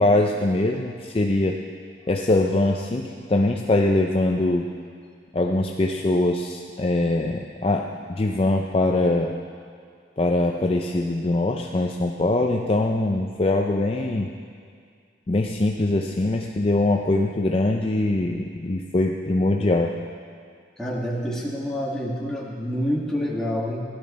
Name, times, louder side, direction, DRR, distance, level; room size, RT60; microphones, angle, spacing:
voice 1, 0.0-1.6 2.1-4.7 5.3-9.3 10.2-14.3 15.3-19.9, left 2 dB, 30° left, 2 dB, 0.4 m, -22 dB
voice 2, 20.8-23.8, equal, 5° left, -4 dB, 1.6 m, -27 dB
16.0 x 11.5 x 4.2 m, 2.2 s
head